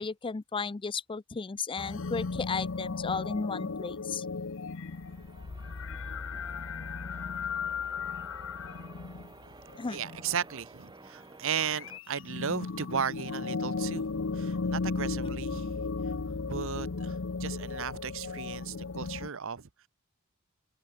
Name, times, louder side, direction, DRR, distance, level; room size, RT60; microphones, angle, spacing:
voice 1, 0.0-4.2 9.8-10.0, left 5 dB, 25° left, 0.4 m, -34 dB
sound 1, 1.8-10.5 11.5-19.3, left 4 dB, 65° left, 0.8 m, -35 dB
Church bell, 4.7-12.0, right 3 dB, 20° right, 1.2 m, -52 dB
voice 2, 9.9-15.9 16.4-19.9, right 7 dB, 65° right, 0.9 m, -35 dB
head